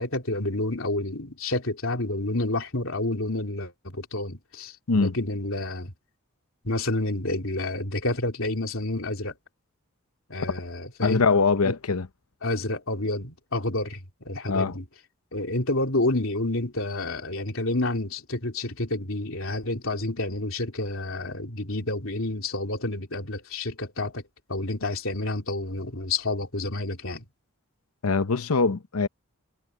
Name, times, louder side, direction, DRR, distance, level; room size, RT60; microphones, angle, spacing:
voice 1, 0.0-5.9 6.6-9.3 10.3-11.2 11.6-11.8 12.4-14.8 15.3-24.2 24.5-27.3, left 2 dB, 65° left, 3.5 m, -29 dB
voice 2, 11.0-12.1 14.5-14.8 28.0-29.1, left 4 dB, 80° left, 0.8 m, -22 dB
head